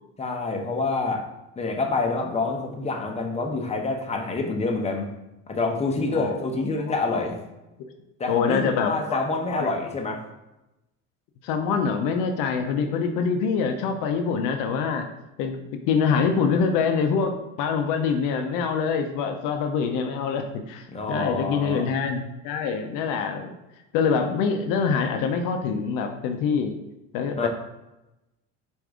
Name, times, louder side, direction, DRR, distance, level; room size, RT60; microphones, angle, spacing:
voice 1, 0.2-1.3 1.6-5.1 5.5-7.4 8.2-10.2 20.9-21.9 27.4-27.5, left 3 dB, 20° left, 2 dB, 0.7 m, -27 dB
voice 2, 8.3-9.2 9.5-9.7 11.4-15.1 15.4-15.5 15.9-23.5 23.9-26.7 27.1-27.5, left 5 dB, 75° left, 5 dB, 0.6 m, -25 dB
4.8 x 2.6 x 3.5 m, 0.95 s
supercardioid pair, 90°, 33 cm